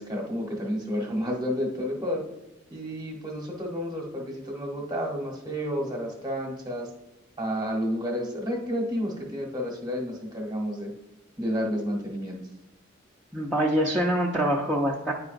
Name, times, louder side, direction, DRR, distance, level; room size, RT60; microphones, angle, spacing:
voice 1, 0.0-2.2 2.7-6.9 7.4-10.9 11.4-12.4, equal, 20° right, -1 dB, 1.1 m, -30 dB
voice 2, 13.3-15.1, right 1 dB, 5° right, -6 dB, 0.6 m, -25 dB
9.6 x 4.7 x 2.5 m, 0.96 s
head